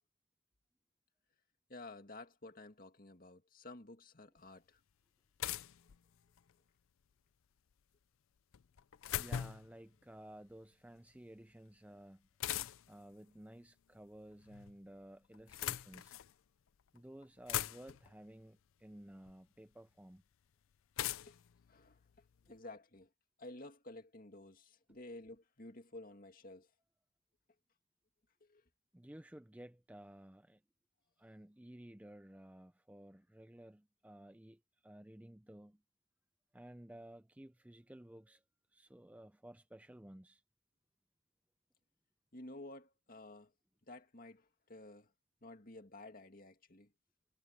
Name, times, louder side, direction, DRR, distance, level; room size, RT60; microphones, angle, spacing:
voice 1, 1.7-4.8 21.3-21.4 21.7-23.1 23.4-26.7 28.4-28.6 42.3-43.5 43.9-45.1 45.4-46.9, left 2 dB, 45° left, 2.1 m, -53 dB
sound 1, 4.4-4.5 5.4-6.5 8.5-9.8 12.4-13.0 14.2-14.8 15.3-16.3 17.0-17.1 17.2-18.1 19.3-19.4 21.0-22.5, left 11 dB, 80° left, 0.5 m, -41 dB
voice 2, 9.2-12.3 12.9-16.2 16.9-20.2 28.9-30.6 31.2-35.8 36.5-38.4 38.7-40.4, right 1 dB, 5° right, 0.5 m, -55 dB
head